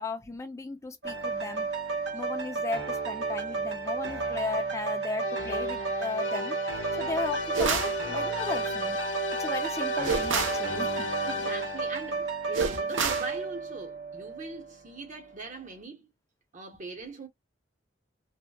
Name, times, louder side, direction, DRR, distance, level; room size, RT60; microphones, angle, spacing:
voice 1, 0.0-1.7 2.1-6.6 7.0-9.0 9.4-11.5, left 3 dB, 15° left, 0.4 m, -36 dB
sound 1, 1.0-14.7 15.2-15.3, right 4 dB, 60° right, 1.1 m, -32 dB
sound 2, 5.2-12.0, left 4 dB, 70° left, 0.6 m, -35 dB
sound 3, 7.5-8.0 10.0-10.6 12.5-13.3, right 5 dB, 80° right, 0.6 m, -28 dB
voice 2, 11.2-16.1 16.5-17.3, right 3 dB, 40° right, 0.7 m, -41 dB
2.7 x 2.0 x 2.2 m
head